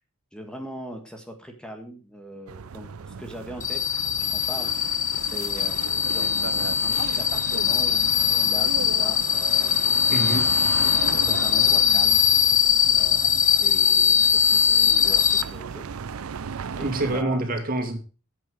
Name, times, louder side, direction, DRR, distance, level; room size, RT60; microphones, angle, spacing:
voice 1, 0.3-5.8 6.0-10.0 10.9-12.6 12.9-15.9 16.7-17.5, right 1 dB, 5° left, 1.7 m, -41 dB
sound 1, 2.5-17.2, right 6 dB, 90° right, 0.5 m, -36 dB
sound 2, 3.6-15.4, left 8 dB, 35° left, 0.8 m, -21 dB
voice 2, 10.1-10.6 16.8-18.0, right 1 dB, 45° right, 2.6 m, -26 dB
12.0 x 8.4 x 5.0 m
head